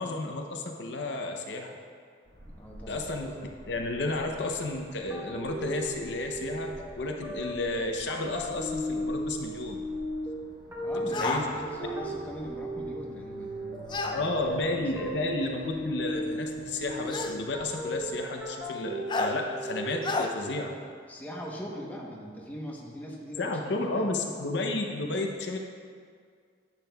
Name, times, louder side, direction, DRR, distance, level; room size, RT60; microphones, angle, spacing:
voice 1, 0.0-1.8 2.9-3.3 3.7-9.8 11.2-11.5 14.1-20.7 23.4-25.6, left 2 dB, 65° left, 2 dB, 0.6 m, -32 dB
sound 1, 2.3-18.1, equal, 60° right, 1.6 m, -50 dB
voice 2, 2.4-3.0 10.8-15.0 21.1-24.1 24.4-24.5, equal, 10° left, -3 dB, 0.9 m, -41 dB
sound 2, 5.1-20.5, equal, 15° right, 1.1 m, -36 dB
sound 3, 11.1-11.5 13.9-14.2 15.4-15.5 17.1-17.4 19.1-19.3 20.0-20.3, left 3 dB, 25° left, 0.4 m, -29 dB
10.5 x 8.2 x 2.3 m, 2.1 s
head